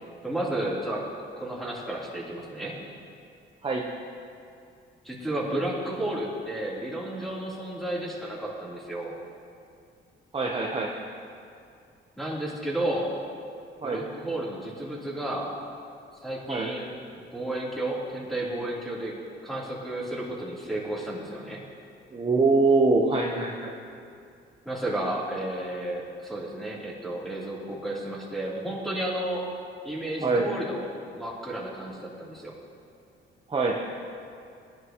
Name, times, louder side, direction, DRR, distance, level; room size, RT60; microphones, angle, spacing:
voice 1, 0.2-2.8 5.0-9.1 12.2-13.1 13.8-15.5 16.2-16.9 17.3-19.1 19.4-21.6 24.7-29.4 29.8-30.9 31.1-32.5, right 1 dB, ahead, -6 dB, 3.5 m, -32 dB
voice 2, 10.3-10.9 13.8-14.0 16.5-16.7 22.1-23.7 30.2-30.5 33.5-33.8, right 3 dB, 25° right, -2 dB, 1.0 m, -23 dB
18.0 x 11.0 x 3.1 m, 2.4 s
cardioid pair, 90°, 20 cm